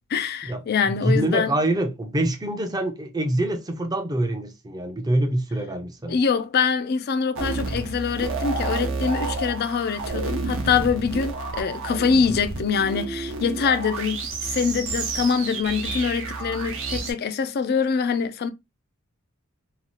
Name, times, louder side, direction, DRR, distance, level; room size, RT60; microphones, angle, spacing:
voice 1, 0.1-1.6 6.1-18.5, left 6 dB, 45° left, 0.3 m, -24 dB
voice 2, 0.9-6.2, right 1 dB, 20° right, 0.5 m, -25 dB
sound 1, 7.3-17.1, right 3 dB, 60° right, 0.7 m, -30 dB
2.8 x 2.3 x 2.9 m
head